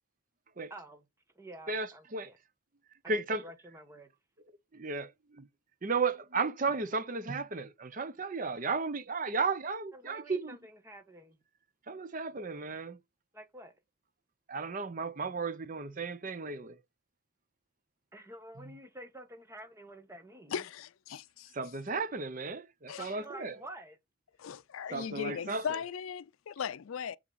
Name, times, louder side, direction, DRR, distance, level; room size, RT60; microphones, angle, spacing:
voice 1, 0.7-1.0 1.3-2.4 3.0-4.1 9.9-11.4 13.3-13.7 18.1-20.7 23.0-24.0, right 1 dB, 15° right, 1.2 m, -49 dB
voice 2, 1.7-2.3 3.1-3.4 4.7-5.5 5.8-10.6 11.9-13.0 14.5-16.8 18.6-18.7 21.5-23.6 24.9-25.8, right 4 dB, 40° right, 0.6 m, -34 dB
voice 3, 20.5-21.5 22.9-23.1 24.4-27.2, left 7 dB, 75° left, 0.4 m, -38 dB
7.1 x 5.6 x 4.0 m
head